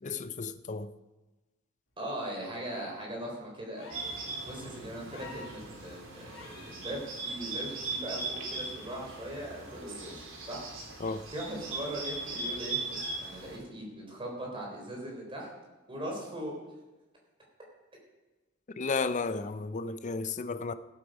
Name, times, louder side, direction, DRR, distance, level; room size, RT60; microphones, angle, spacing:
voice 1, 0.0-0.9 11.0-11.3 18.8-20.7, left 4 dB, 40° left, 0.6 m, -33 dB
voice 2, 2.0-4.0 4.4-10.6 11.3-15.5 15.9-16.5, right 1 dB, 25° right, 3.6 m, -40 dB
sound 1, 3.7-4.3 5.1-5.6 6.3-6.8 8.3-8.4, left 3 dB, 85° left, 3.0 m, -48 dB
Bird, 3.9-13.6, right 3 dB, 85° right, 3.1 m, -39 dB
16.5 x 8.3 x 5.3 m
head